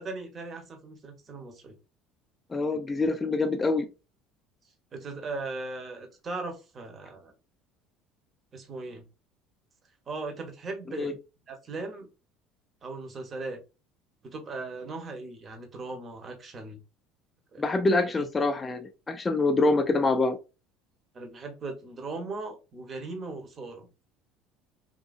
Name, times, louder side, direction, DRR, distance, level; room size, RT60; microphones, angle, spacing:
voice 1, 0.0-1.8 2.7-2.8 4.9-7.3 8.5-9.1 10.1-11.1 11.5-12.1 12.8-13.6 14.2-16.8 17.5-17.6 18.2-18.3 21.1-23.9, right 3 dB, 35° right, 0.9 m, -38 dB
voice 2, 2.5-3.9 10.9-11.1 17.6-20.4, left 3 dB, 20° left, 0.4 m, -25 dB
2.7 x 2.5 x 2.4 m
supercardioid pair, 90°, 0 cm